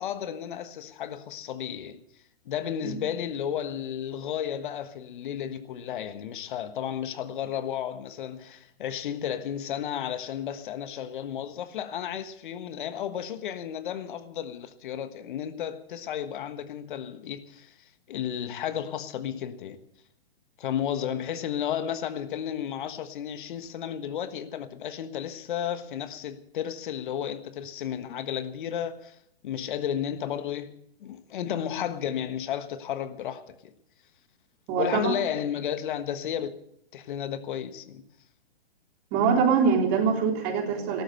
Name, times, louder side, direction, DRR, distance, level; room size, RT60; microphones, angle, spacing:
voice 1, 0.0-2.0 2.4-17.7 18.1-19.8 20.6-29.1 29.4-30.7 31.0-33.7 34.8-36.5 36.9-38.0, left 9 dB, 55° left, 1.4 m, -33 dB
voice 2, 34.7-35.2 39.1-41.0, right 6 dB, 35° right, 3.6 m, -24 dB
14.5 x 12.5 x 6.5 m
hypercardioid pair, 120°, 31 cm